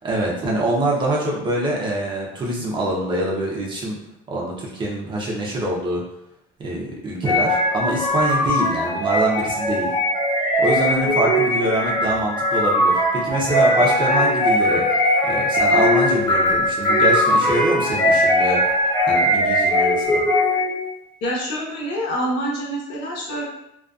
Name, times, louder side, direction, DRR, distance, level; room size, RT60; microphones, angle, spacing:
voice 1, 0.0-4.0 4.3-6.0 6.6-9.9 10.6-14.8 15.2-18.6 19.1-20.2, right 1 dB, 25° right, -3 dB, 0.6 m, -24 dB
sound 1, 7.2-20.9, left 1 dB, 20° left, 1.1 m, -19 dB
voice 2, 21.2-23.4, equal, 75° left, -4 dB, 0.9 m, -26 dB
2.5 x 2.4 x 2.3 m, 0.81 s
cardioid pair, 140°, 19 cm